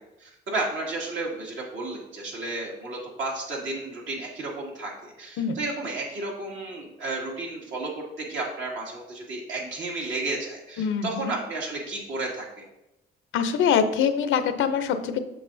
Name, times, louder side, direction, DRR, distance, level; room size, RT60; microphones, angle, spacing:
voice 1, 0.2-12.6, right 2 dB, 70° right, -2 dB, 2.2 m, -32 dB
voice 2, 10.8-11.3 13.3-15.2, left 7 dB, 80° left, 10 dB, 0.6 m, -24 dB
7.7 x 6.0 x 2.6 m, 0.93 s
cardioid pair, 90°, 20 cm